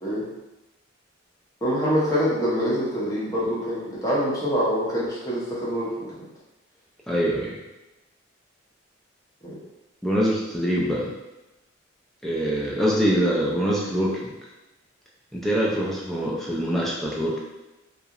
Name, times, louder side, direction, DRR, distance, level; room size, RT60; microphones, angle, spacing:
voice 1, 1.6-6.2 9.4-9.5 12.9-13.1 15.7-15.8, equal, 15° left, -8 dB, 0.7 m, -25 dB
voice 2, 7.1-7.6 10.0-11.1 12.2-14.3 15.3-17.4, equal, ahead, -5 dB, 0.3 m, -24 dB
2.7 x 2.0 x 2.3 m, 1.0 s
head